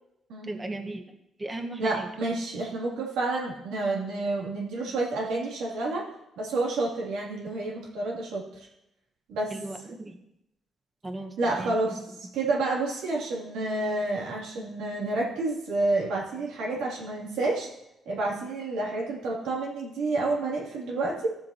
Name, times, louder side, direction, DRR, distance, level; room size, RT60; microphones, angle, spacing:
voice 1, 0.4-1.0 1.4-2.1 9.5-10.2 11.0-12.0, right 2 dB, 20° right, 4 dB, 1.3 m, -36 dB
voice 2, 1.8-6.1 6.4-8.4 9.3-9.5 11.4-12.0 12.3-17.7 18.1-21.3, right 2 dB, 85° right, -4 dB, 2.9 m, -29 dB
15.0 x 7.3 x 3.0 m, 0.85 s
cardioid pair, 90°, 0 cm